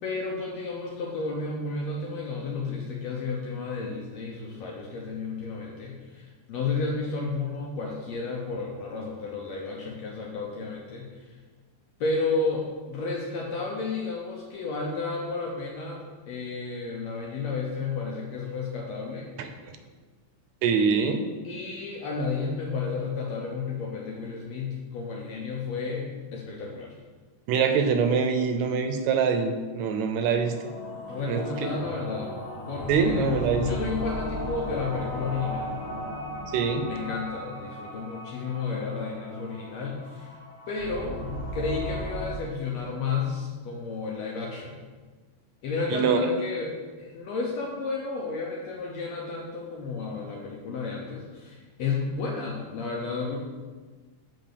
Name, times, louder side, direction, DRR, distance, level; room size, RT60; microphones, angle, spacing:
voice 1, 0.0-11.4 12.0-19.3 21.4-26.9 31.1-32.3 32.7-35.8 36.9-40.4 40.7-44.8 45.6-53.4, left 4 dB, 70° left, -2 dB, 2.0 m, -32 dB
voice 2, 20.6-21.3 27.5-30.5 31.3-31.7 32.9-33.7 36.5-36.9 45.9-46.3, right 6 dB, 75° right, 7 dB, 1.9 m, -24 dB
sound 1, 30.0-42.3, equal, 50° left, 0.9 m, -36 dB
7.5 x 4.3 x 6.7 m, 1.4 s
omnidirectional pair, 3.4 m